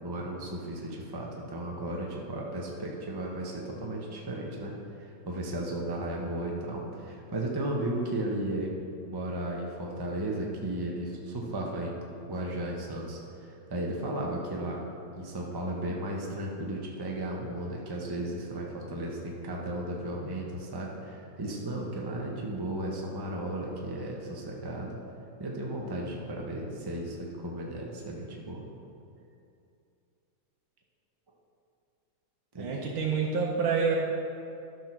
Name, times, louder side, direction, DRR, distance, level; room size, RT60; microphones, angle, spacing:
voice 1, 0.0-12.0 12.3-14.8 15.1-25.0 25.4-28.6 32.5-32.8, right 1 dB, 40° right, -2 dB, 0.3 m, -35 dB
voice 2, 32.6-34.0, right 5 dB, 85° right, -3 dB, 1.8 m, -27 dB
12.5 x 4.5 x 6.0 m, 2.6 s
omnidirectional pair, 2.2 m